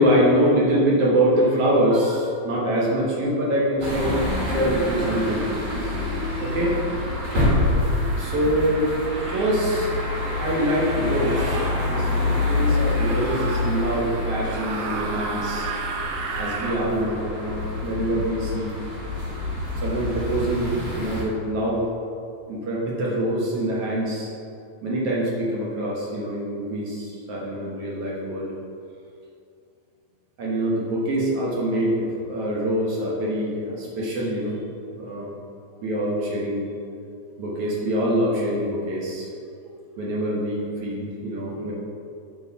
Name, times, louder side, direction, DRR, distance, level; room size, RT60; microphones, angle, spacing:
voice 1, 0.0-5.5 6.4-6.8 8.2-8.9 9.3-9.9 10.4-15.7 16.4-18.7 19.8-21.8 22.5-24.3 24.8-28.5 30.4-34.6 35.0-35.3 35.8-36.7 37.4-39.3 40.0-41.7, equal, 60° right, -5 dB, 1.6 m, -24 dB
sound 1, 3.8-21.2, left 2 dB, 45° right, 1.6 m, -27 dB
sound 2, 7.8-7.9 9.1-9.6 11.1-11.7 12.9-13.6 14.4-16.8, right 4 dB, 80° right, 1.6 m, -33 dB
7.0 x 4.6 x 5.6 m, 2.5 s
omnidirectional pair, 4.1 m